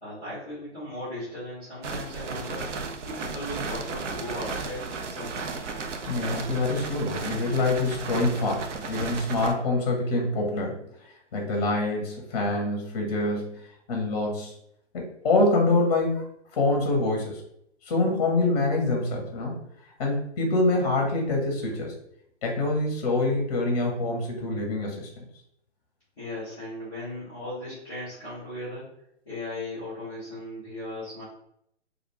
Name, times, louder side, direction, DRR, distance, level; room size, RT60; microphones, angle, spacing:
voice 1, 0.0-2.7 3.0-5.4 26.2-28.9 29.2-31.2, left 1 dB, 5° right, -19 dB, 0.3 m, -37 dB
sound 1, 1.8-9.5, right 4 dB, 80° right, 0.5 m, -34 dB
voice 2, 6.0-10.8 11.3-13.6 13.9-14.5 14.9-17.4 17.9-19.6 20.0-21.9 22.4-25.1, left 2 dB, 35° left, 1 dB, 0.6 m, -25 dB
2.4 x 2.1 x 2.9 m, 0.74 s
figure-of-eight pair, 125°, 36 cm